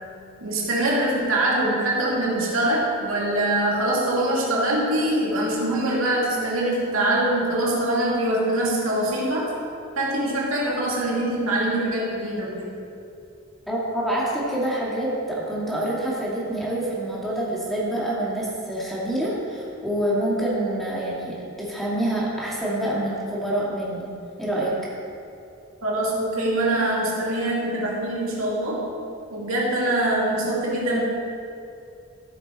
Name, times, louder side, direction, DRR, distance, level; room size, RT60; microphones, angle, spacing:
voice 1, 0.4-9.5 10.0-12.7 25.8-28.8 29.3-31.0, right 1 dB, 80° right, -4 dB, 2.5 m, -23 dB
voice 2, 13.7-24.1 24.4-24.7, right 1 dB, ahead, -6 dB, 2.2 m, -26 dB
14.5 x 7.2 x 4.3 m, 2.6 s
head